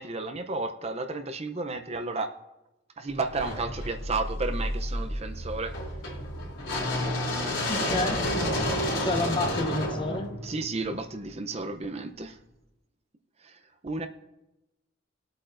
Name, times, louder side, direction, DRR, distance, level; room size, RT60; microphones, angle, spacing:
voice 1, 0.0-2.3 3.0-5.7 10.4-12.4 13.4-13.5 13.8-14.1, right 3 dB, 30° right, 7 dB, 0.6 m, -32 dB
sound 1, 3.3-11.3, left 1 dB, 70° left, 3.5 m, -30 dB
voice 2, 7.7-8.2 9.0-10.3, left 2 dB, 25° left, 5 dB, 0.8 m, -29 dB
21.0 x 8.5 x 2.6 m, 0.96 s
head